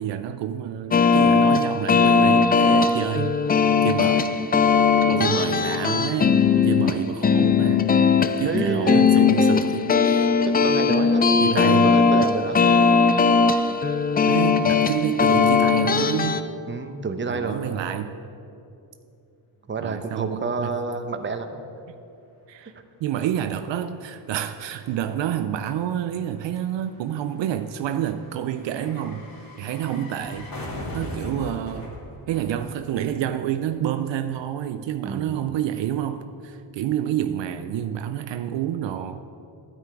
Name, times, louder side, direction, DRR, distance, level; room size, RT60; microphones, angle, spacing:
voice 1, 0.0-3.4 3.8-4.3 5.2-7.9 8.2-10.3 11.4-11.9 14.3-16.4 17.3-18.2 19.8-20.8 22.5-22.7 23.0-29.3 29.6-30.5 30.9-32.0 32.3-39.2, right 10 dB, 65° right, 10 dB, 0.5 m, -28 dB
sound 1, 0.9-16.4, left 5 dB, 20° left, 0.4 m, -19 dB
voice 2, 5.0-5.4 8.4-9.3 10.5-12.6 16.7-17.8 19.7-21.6 22.7-22.8 35.0-35.4, right 4 dB, 25° right, 8 dB, 0.8 m, -29 dB
sound 2, 22.6-22.7 22.9-33.3 33.5-33.6, left 1 dB, 45° left, 2.4 m, -40 dB
9.5 x 8.9 x 4.8 m, 2.7 s
cardioid pair, 70°, 47 cm